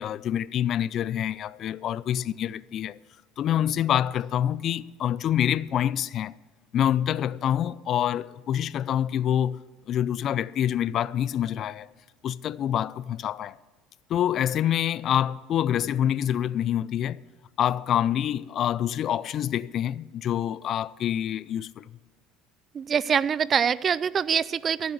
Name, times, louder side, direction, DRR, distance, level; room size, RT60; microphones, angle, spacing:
voice 1, 0.0-3.0 3.4-6.3 6.7-9.6 9.9-11.9 12.2-13.6 14.1-17.2 17.6-21.8, left 10 dB, 50° left, 0.4 m, -26 dB
voice 2, 22.7-24.9, right 7 dB, 35° right, 0.4 m, -24 dB
14.5 x 7.3 x 8.1 m
supercardioid pair, 100°, 0 cm